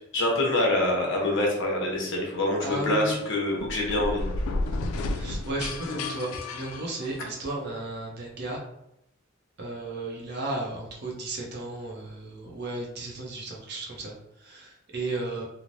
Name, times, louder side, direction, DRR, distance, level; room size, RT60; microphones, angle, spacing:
voice 1, 0.1-4.2, left 1 dB, 60° left, -1 dB, 0.7 m, -25 dB
voice 2, 2.6-3.2 5.1-8.6 9.6-15.4, right 2 dB, 55° right, -2 dB, 0.6 m, -34 dB
sound 1, 3.5-7.5, left 2 dB, 85° left, 0.3 m, -32 dB
3.1 x 2.0 x 2.5 m, 0.83 s
head